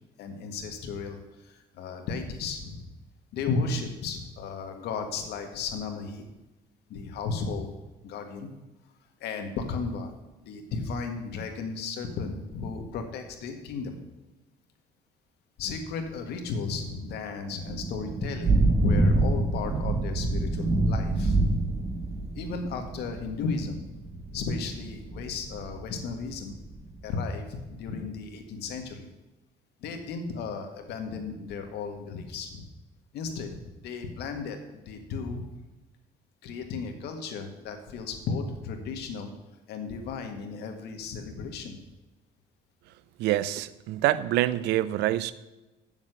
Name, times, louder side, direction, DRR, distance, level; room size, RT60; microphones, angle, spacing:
voice 1, 0.2-2.9 3.3-6.3 6.9-7.7 8.0-8.5 9.2-10.1 10.4-14.0 15.6-21.4 22.4-23.8 24.3-26.6 27.0-29.1 29.8-32.6 33.1-35.4 36.4-39.3 39.7-41.8, left 4 dB, 75° left, 5 dB, 1.9 m, -34 dB
Thunder / Rain, 17.5-27.0, right 2 dB, 35° right, 1.4 m, -27 dB
voice 2, 43.2-45.3, right 14 dB, 85° right, 17 dB, 0.6 m, -26 dB
7.4 x 7.2 x 8.1 m, 1.1 s
cardioid pair, 110°, 17 cm